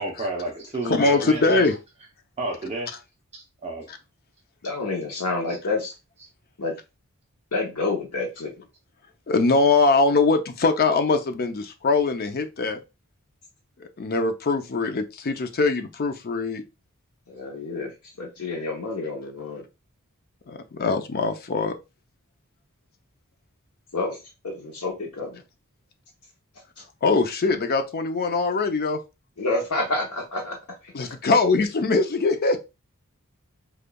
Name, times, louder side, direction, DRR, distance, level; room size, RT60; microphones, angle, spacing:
voice 1, 0.0-1.7 2.4-2.9 3.3-3.9 5.5-5.6, right 1 dB, 30° right, 0.6 m, -31 dB
voice 2, 0.8-1.8 9.3-12.8 13.8-16.6 20.5-21.7 27.0-29.0 30.9-32.6, left 3 dB, 45° left, 0.5 m, -22 dB
voice 3, 4.6-5.9 6.6-6.7 7.5-8.7 17.3-19.6 23.9-24.2 24.4-25.4 29.4-30.6 30.8-30.9, left 2 dB, 85° left, 0.8 m, -29 dB
5.1 x 2.4 x 2.2 m
head